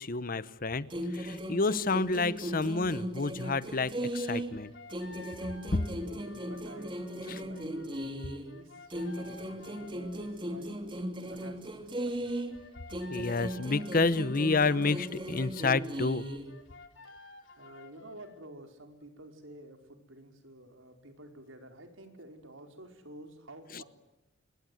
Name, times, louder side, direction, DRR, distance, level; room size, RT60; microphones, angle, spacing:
voice 1, 0.0-4.7 5.7-5.8 7.3-7.4 13.1-16.2 23.7-23.8, left 3 dB, 45° left, 17 dB, 0.9 m, -29 dB
sound 1, 0.9-4.6 4.9-8.5 8.9-12.6 12.9-16.5, equal, 25° right, 3.0 m, -37 dB
sound 2, 4.2-10.4 12.2-18.4, left 4 dB, 65° left, 3.3 m, -54 dB
voice 2, 5.9-8.0 8.5-12.3 17.6-23.8, right 1 dB, 80° right, 6 dB, 4.6 m, -51 dB
27.5 x 22.5 x 9.3 m, 0.93 s
head